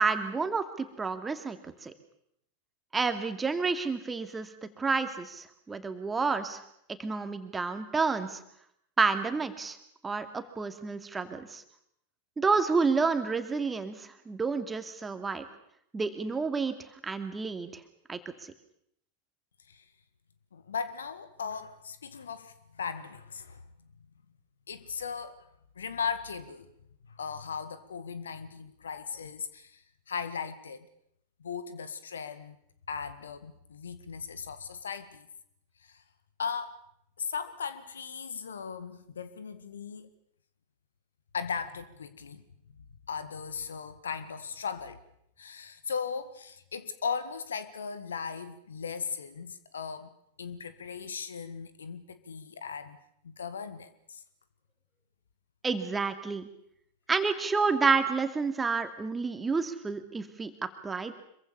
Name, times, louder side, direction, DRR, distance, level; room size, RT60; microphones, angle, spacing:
voice 1, 0.0-1.9 2.9-4.5 4.8-6.6 7.0-8.4 9.0-9.8 10.0-11.6 12.4-15.5 15.9-16.8 17.0-17.8 18.1-18.5 55.6-56.4 57.1-61.1, right 4 dB, 15° right, 8 dB, 2.4 m, -29 dB
voice 2, 20.5-23.6 24.7-25.3 25.8-26.7 27.1-30.9 31.4-32.6 32.9-35.3 35.9-36.0 36.4-36.8 37.2-40.1 41.3-42.4 43.1-45.0 45.4-50.1 50.4-53.0 53.2-54.2, left 6 dB, 70° left, 13 dB, 1.9 m, -37 dB
26.0 x 23.5 x 6.9 m, 0.73 s
figure-of-eight pair, 90°, 0 cm